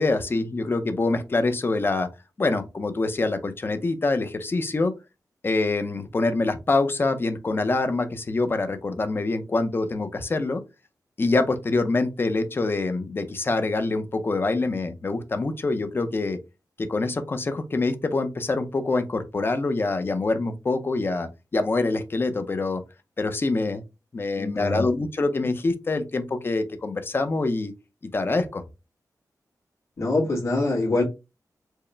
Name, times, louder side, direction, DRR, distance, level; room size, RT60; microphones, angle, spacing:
voice 1, 0.0-2.1 2.4-4.9 5.4-10.6 11.2-16.4 16.8-22.8 23.2-23.8 24.1-27.7 28.1-28.6, left 3 dB, 35° left, 8 dB, 0.5 m, -25 dB
voice 2, 24.3-24.8 30.0-31.0, left 2 dB, 50° left, -2 dB, 1.8 m, -24 dB
4.6 x 2.1 x 3.2 m, 0.26 s
wide cardioid pair, 155°, 7 cm